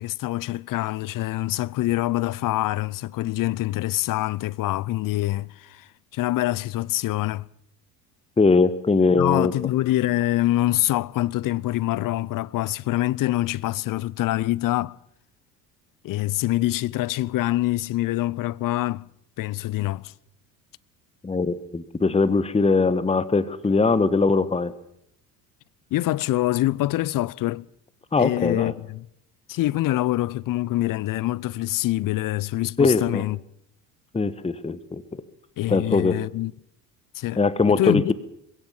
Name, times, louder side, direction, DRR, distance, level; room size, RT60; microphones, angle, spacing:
voice 1, 0.0-5.9 6.1-7.5 9.2-15.0 16.0-19.1 19.4-20.1 25.9-27.7 28.2-29.1 29.5-33.4 35.6-36.5 37.1-37.4 37.8-38.1, left 16 dB, 40° left, 0.7 m, -25 dB
voice 2, 8.4-9.5 21.2-24.7 28.1-28.7 32.8-33.2 34.1-35.0 35.7-36.2 37.4-38.1, left 4 dB, 10° left, 1.3 m, -21 dB
21.5 x 16.5 x 7.5 m
hypercardioid pair, 70°, 49 cm